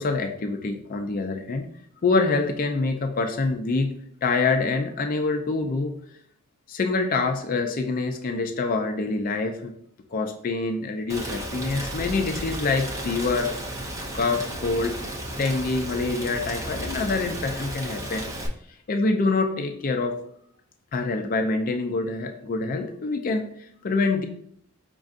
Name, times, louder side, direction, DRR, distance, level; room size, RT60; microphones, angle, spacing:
voice 1, 0.0-1.7 2.0-3.9 4.2-5.9 6.7-9.7 10.1-13.5 14.1-15.0 15.4-18.3 18.9-20.2 20.9-24.3, left 3 dB, 40° left, 5 dB, 0.4 m, -26 dB
Rain, 11.1-18.5, right 1 dB, 15° right, 0.5 m, -33 dB
5.2 x 3.7 x 2.4 m, 0.68 s
head